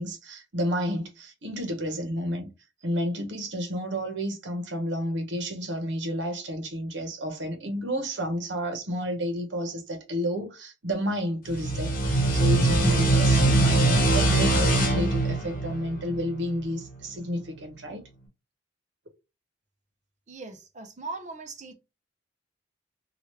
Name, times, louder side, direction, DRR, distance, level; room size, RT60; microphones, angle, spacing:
voice 1, 0.0-2.5 2.8-18.1, equal, 75° right, 1.0 m, -31 dB
sound 1, 11.5-16.8, right 2 dB, 50° left, 0.9 m, -22 dB
voice 2, 20.3-21.7, right 3 dB, 40° right, 0.7 m, -39 dB
3.0 x 2.4 x 3.1 m
head